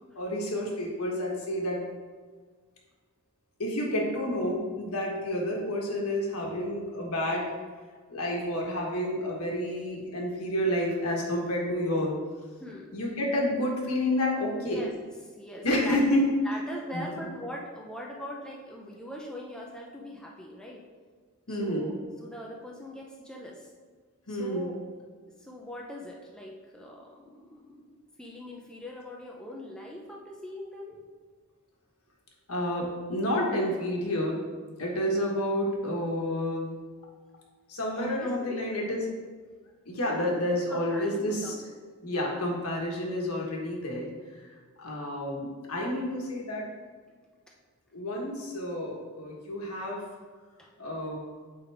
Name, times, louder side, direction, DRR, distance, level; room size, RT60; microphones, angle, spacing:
voice 1, 0.1-1.8 3.6-7.5 8.1-12.1 12.9-14.8 15.6-16.3 16.9-17.0 21.5-21.9 24.3-24.7 32.5-34.4 34.8-36.7 37.7-39.0 39.8-41.5 42.0-44.1 44.4-46.7 47.9-50.0 50.8-51.2, left 1 dB, 80° left, -1 dB, 1.5 m, -29 dB
voice 2, 12.6-12.9 14.6-14.9 15.3-16.2 16.4-20.8 21.5-23.7 24.3-24.8 25.4-31.0 34.9-35.1 37.9-38.6 40.1-41.6 42.9-43.0 45.9-46.1 50.6-50.7, equal, 5° left, -2 dB, 0.6 m, -42 dB
8.8 x 4.0 x 3.5 m, 1.5 s
head